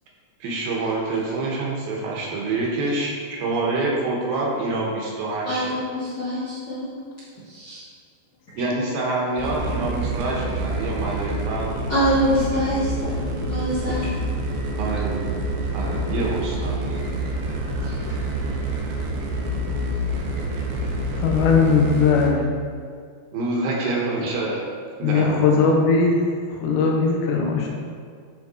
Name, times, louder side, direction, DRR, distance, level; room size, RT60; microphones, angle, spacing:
voice 1, 0.4-5.8 8.6-11.8 14.8-15.4 15.7-17.1 23.3-24.7 25.0-25.7, right 2 dB, 70° right, -3 dB, 2.6 m, -26 dB
voice 2, 5.4-6.9 7.5-7.8 11.9-14.1 17.8-17.9, equal, 55° left, -11 dB, 1.2 m, -25 dB
sound 1, 9.4-22.3, right 1 dB, 90° right, 3.3 m, -27 dB
voice 3, 21.1-22.5 24.2-24.3 25.0-27.7, left 4 dB, 90° left, 0 dB, 3.3 m, -19 dB
10.5 x 4.3 x 4.2 m, 2.1 s
omnidirectional pair, 4.9 m